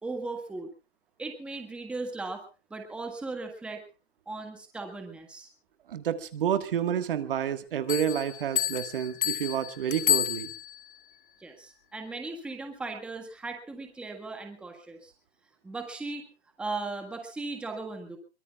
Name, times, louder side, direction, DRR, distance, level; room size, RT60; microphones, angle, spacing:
voice 1, 0.0-0.7 1.2-2.4 2.7-3.8 4.3-5.5 11.4-15.1 15.6-16.3 16.6-18.2, right 3 dB, 5° right, 4 dB, 1.6 m, -37 dB
voice 2, 5.9-10.5, right 9 dB, 55° right, 9 dB, 1.7 m, -29 dB
Bell, 7.9-11.0, left 11 dB, 55° left, 1.7 m, -30 dB
23.5 x 22.5 x 2.4 m, 0.33 s
hypercardioid pair, 165°, 32 cm